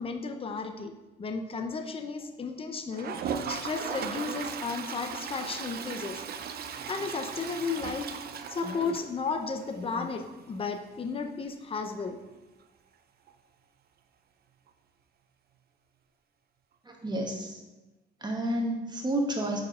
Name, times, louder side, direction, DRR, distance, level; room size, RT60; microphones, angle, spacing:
voice 1, 0.0-3.2 3.5-6.2 6.9-8.2 8.5-12.2, left 4 dB, 30° left, 6 dB, 0.6 m, -34 dB
Toilet flush, 2.9-9.6 10.0-10.1 10.3-10.4 10.6-10.7 13.3-13.4 14.7-14.8, right 7 dB, 50° right, 0.5 m, -37 dB
voice 2, 16.8-17.6 18.2-19.6, right 1 dB, 20° right, 1 dB, 1.2 m, -30 dB
4.6 x 4.3 x 4.9 m, 1.1 s
cardioid pair, 90°, 20 cm